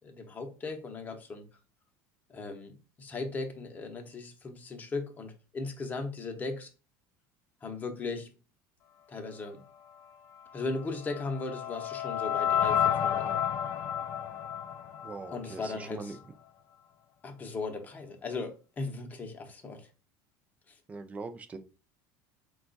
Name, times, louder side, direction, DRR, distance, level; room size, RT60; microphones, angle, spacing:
voice 1, 0.0-1.4 2.3-2.7 3.0-6.7 7.6-8.3 9.1-9.6 10.5-13.4 15.3-16.2 17.2-19.9 20.7-20.8, left 3 dB, 20° left, 0.8 m, -37 dB
sound 1, 10.7-15.8, left 9 dB, 45° left, 0.4 m, -31 dB
voice 2, 15.0-16.2 20.9-21.6, right 4 dB, 20° right, 0.5 m, -41 dB
4.2 x 2.3 x 3.9 m
cardioid pair, 135°, 8 cm